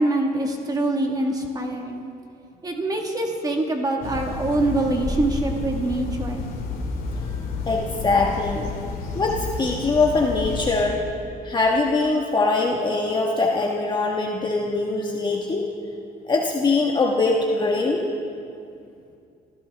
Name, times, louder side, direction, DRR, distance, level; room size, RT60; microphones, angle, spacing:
voice 1, 0.0-2.0 2.6-6.4, right 2 dB, 20° right, 2 dB, 1.6 m, -24 dB
sound 1, 4.0-10.8, left 3 dB, 55° left, 2.3 m, -30 dB
voice 2, 7.7-8.7 9.1-11.0 11.4-15.6 16.2-18.0, left 3 dB, 25° left, -1 dB, 1.3 m, -22 dB
26.5 x 15.0 x 3.4 m, 2.5 s
cardioid pair, 110°, 17 cm